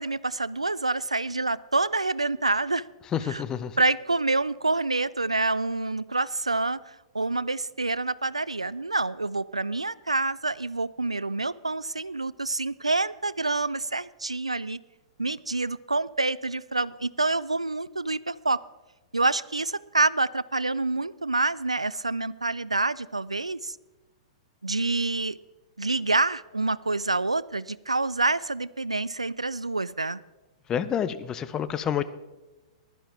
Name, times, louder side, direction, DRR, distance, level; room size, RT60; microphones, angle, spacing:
voice 1, 0.0-2.9 3.3-3.4 3.8-14.8 15.2-18.6 19.1-23.8 24.6-25.4 25.8-30.2, right 3 dB, 85° right, 20 dB, 0.3 m, -27 dB
voice 2, 3.1-3.8 30.7-32.0, left 8 dB, 20° left, 13 dB, 0.6 m, -28 dB
15.5 x 11.5 x 3.5 m, 1.1 s
figure-of-eight pair, 105°, 3 cm